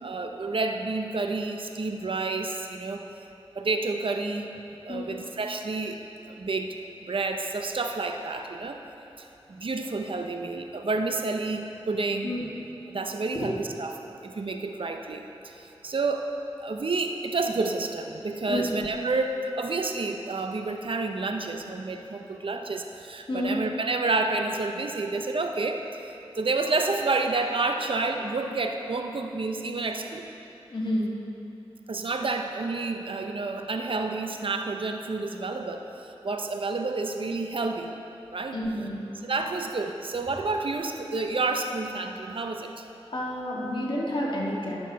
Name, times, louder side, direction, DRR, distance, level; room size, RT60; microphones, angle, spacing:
voice 1, 0.0-3.0 3.6-4.6 4.9-6.0 6.2-6.8 7.0-8.8 9.2-12.3 12.9-16.3 16.6-30.3 31.9-37.9 38.3-38.6 39.2-42.8, right 3 dB, 60° right, 4 dB, 0.6 m, -29 dB
voice 2, 30.7-31.1 38.5-39.0 43.1-44.8, left 1 dB, 55° left, -4 dB, 1.8 m, -29 dB
11.0 x 6.3 x 4.6 m, 3.0 s
cardioid pair, 40°, 10 cm